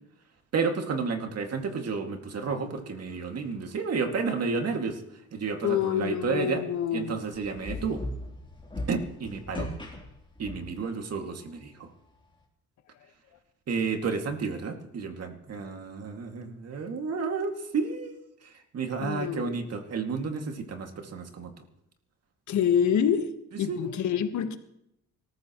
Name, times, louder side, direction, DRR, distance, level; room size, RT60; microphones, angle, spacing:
voice 1, 0.5-5.0 5.3-6.6 6.9-8.0 8.9-9.7 10.4-11.9 13.7-21.5 23.7-23.8, right 5 dB, 55° right, 4 dB, 2.4 m, -31 dB
voice 2, 5.6-7.2 19.0-19.7 22.5-23.3 23.6-24.6, left 8 dB, 70° left, 8 dB, 1.5 m, -27 dB
sound 1, 7.4-10.9, left 1 dB, 15° left, 3.6 m, -38 dB
25.0 x 14.0 x 3.1 m, 0.82 s
cardioid pair, 90°, 30 cm